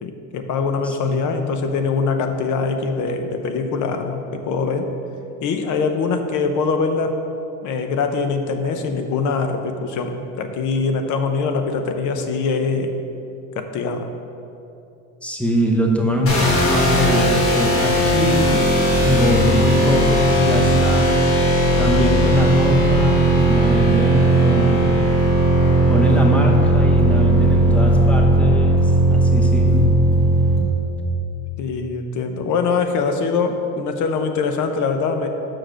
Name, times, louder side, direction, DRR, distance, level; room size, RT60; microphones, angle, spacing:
voice 1, 0.0-4.9 5.4-7.2 7.6-12.9 13.6-14.1 24.8-25.3 31.6-35.3, left 4 dB, 50° left, 6 dB, 0.8 m, -23 dB
voice 2, 15.2-18.7 19.0-21.1 21.8-23.2 23.5-24.9 25.9-29.9, left 1 dB, 5° left, 0 dB, 0.9 m, -22 dB
sound 1, 16.3-30.6, right 1 dB, 35° left, 1.6 m, -17 dB
6.0 x 5.0 x 6.3 m, 2.7 s
supercardioid pair, 115°, 38 cm